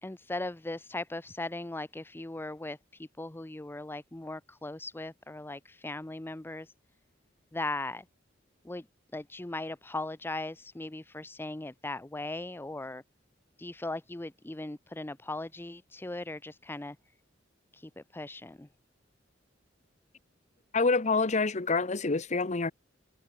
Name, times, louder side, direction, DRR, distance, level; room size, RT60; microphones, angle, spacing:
voice 1, 0.0-2.8 3.2-6.7 7.5-8.0 8.6-8.8 9.1-13.0 13.6-17.0 17.7-18.7, left 2 dB, 10° left, 0.6 m, -38 dB
voice 2, 20.7-22.7, left 3 dB, 40° left, 0.9 m, -27 dB
head